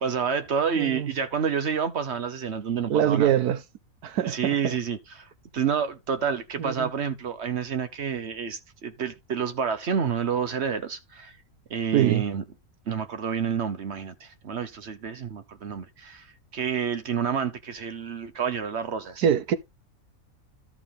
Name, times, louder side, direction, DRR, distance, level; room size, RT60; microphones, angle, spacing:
voice 1, 0.0-3.3 4.2-11.4 11.7-12.4 12.9-19.2, right 7 dB, 50° right, 1.0 m, -29 dB
voice 2, 0.8-1.1 2.9-3.6 4.0-4.7 6.6-6.9 11.9-12.2 19.2-19.6, right 10 dB, 80° right, 1.3 m, -23 dB
13.5 x 4.7 x 3.5 m
omnidirectional pair, 1.6 m